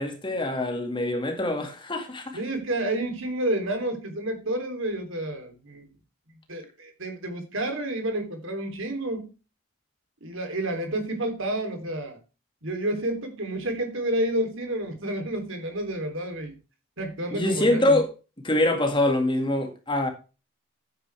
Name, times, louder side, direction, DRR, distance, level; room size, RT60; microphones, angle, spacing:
voice 1, 0.0-2.4 17.3-18.1 18.4-20.1, left 1 dB, 20° left, 2.0 m, -24 dB
voice 2, 2.3-5.9 6.5-9.3 10.2-12.2 12.6-16.6 17.0-18.0, right 1 dB, 65° right, 3.3 m, -30 dB
12.0 x 9.3 x 3.4 m
head